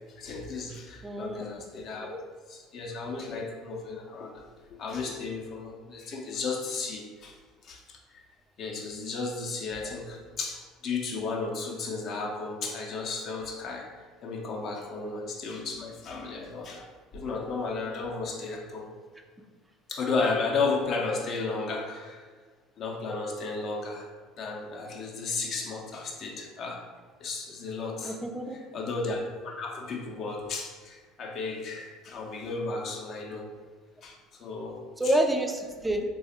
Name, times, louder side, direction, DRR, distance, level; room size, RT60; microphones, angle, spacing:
voice 1, 0.2-2.1 2.5-4.4 4.7-7.3 7.6-8.2 8.6-13.9 14.2-16.9 17.1-18.9 19.9-22.2 22.8-24.1 24.4-26.8 27.2-28.2 28.7-33.5 34.0-35.1, left 4 dB, 45° left, 0 dB, 0.7 m, -34 dB
voice 2, 1.0-1.6 28.0-28.6 35.0-36.0, right 1 dB, 10° right, 5 dB, 0.4 m, -28 dB
3.9 x 2.3 x 2.9 m, 1.5 s
figure-of-eight pair, 65°, 0 cm